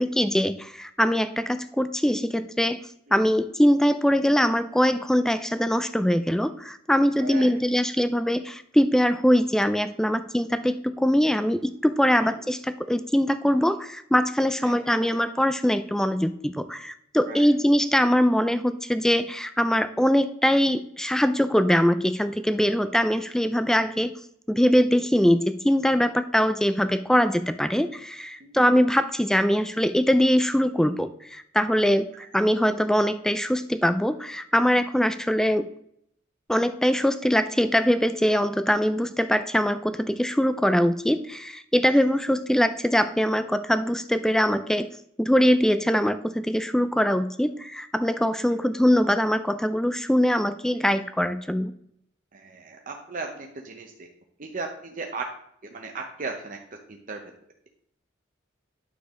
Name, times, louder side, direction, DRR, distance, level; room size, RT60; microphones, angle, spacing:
voice 1, 0.0-2.8 3.1-24.1 24.5-35.7 36.5-44.9 45.2-51.7, equal, 5° left, 11 dB, 0.3 m, -22 dB
voice 2, 7.2-7.5 12.3-12.4 14.6-15.1 17.2-17.5 28.4-28.6 41.9-42.0 52.3-54.1 54.4-55.3 55.7-56.6 56.9-57.2, right 4 dB, 40° right, 2 dB, 0.8 m, -36 dB
9.5 x 6.8 x 3.7 m, 0.70 s
head